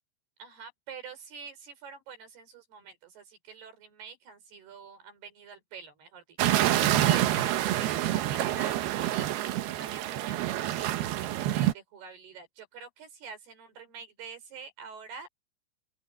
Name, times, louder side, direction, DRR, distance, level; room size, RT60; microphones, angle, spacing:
voice 1, 0.4-6.4 7.0-15.3, right 5 dB, 55° right, 6.1 m, -46 dB
sound 1, 6.4-11.7, right 13 dB, 70° right, 2.5 m, -27 dB
open air
omnidirectional pair, 5.7 m